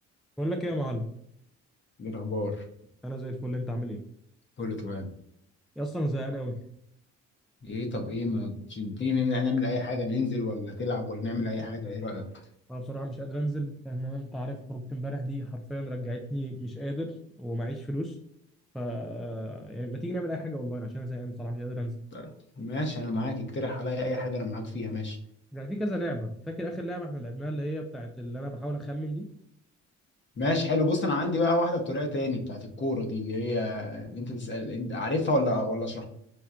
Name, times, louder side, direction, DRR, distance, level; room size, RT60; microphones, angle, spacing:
voice 1, 0.4-1.1 3.0-4.0 5.8-6.6 12.7-18.2 18.7-22.0 25.5-29.3, equal, ahead, 3 dB, 0.3 m, -33 dB
voice 2, 2.0-2.6 4.6-5.1 7.6-12.2 22.1-22.3 22.6-25.2 30.4-36.0, left 2 dB, 40° left, 4 dB, 0.8 m, -29 dB
5.6 x 2.1 x 2.4 m, 0.73 s
cardioid pair, 90°, 30 cm